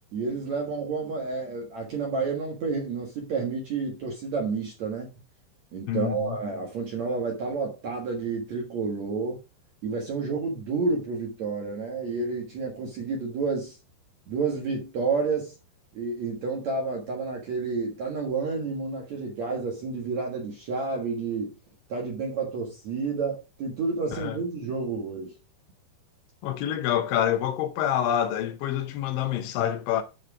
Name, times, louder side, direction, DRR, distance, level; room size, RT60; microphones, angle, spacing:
voice 1, 0.1-5.1 5.7-9.4 9.8-13.8 14.3-15.5 15.9-21.5 21.9-25.3, right 4 dB, 60° right, 2.0 m, -30 dB
voice 2, 5.9-6.4 24.1-24.4 26.4-30.0, left 10 dB, 85° left, 3.4 m, -27 dB
9.5 x 4.9 x 4.8 m
omnidirectional pair, 5.3 m